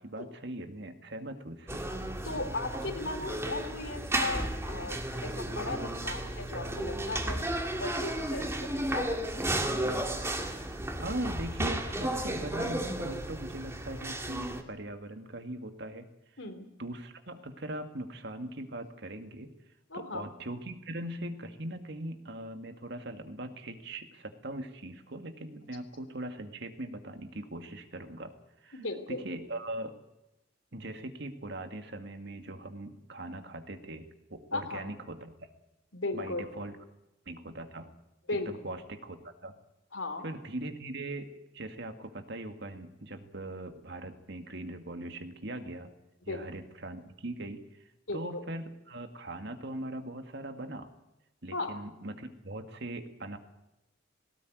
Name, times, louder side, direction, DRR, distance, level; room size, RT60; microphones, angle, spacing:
voice 1, 0.0-1.9 11.0-16.1 16.8-19.5 19.9-28.3 28.6-30.0 30.7-35.3 36.1-36.8 37.3-37.9 38.5-39.5 40.2-41.3 41.5-45.9 46.2-47.6 48.1-50.9 51.4-53.4, right 1 dB, 60° right, 7 dB, 2.1 m, -40 dB
sound 1, 1.7-14.6, right 1 dB, 15° right, 2.0 m, -33 dB
voice 2, 2.2-7.4 7.8-9.2 16.4-16.7 19.9-20.2 28.7-29.2 34.5-34.8 35.9-36.4 38.3-38.5 39.9-40.2 46.3-46.4 48.1-48.4 51.5-51.7, left 2 dB, 80° left, 6 dB, 3.4 m, -36 dB
18.5 x 18.0 x 9.4 m, 0.91 s
head